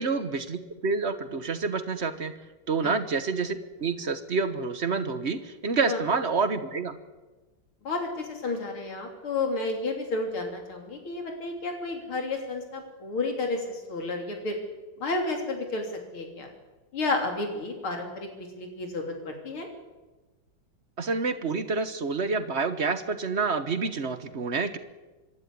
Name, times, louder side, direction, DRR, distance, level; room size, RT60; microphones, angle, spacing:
voice 1, 0.0-2.3 2.7-7.0 21.0-24.8, right 4 dB, 40° right, 11 dB, 1.1 m, -28 dB
voice 2, 7.8-14.6 15.0-16.5 16.9-18.3 18.6-19.7, left 3 dB, 75° left, 3 dB, 4.1 m, -31 dB
25.5 x 13.0 x 9.6 m, 1.2 s
omnidirectional pair, 2.3 m